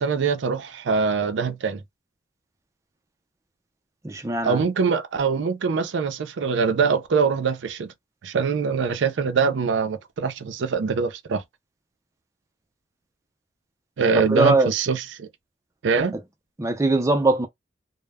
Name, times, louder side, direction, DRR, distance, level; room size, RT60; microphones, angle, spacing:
voice 1, 0.0-1.8 4.4-7.9 8.2-11.4 14.0-15.3 15.8-16.2, right 5 dB, 90° right, 0.4 m, -23 dB
voice 2, 4.0-4.6 14.3-14.7 16.6-17.5, right 2 dB, 15° right, 0.4 m, -21 dB
2.0 x 2.0 x 3.3 m
head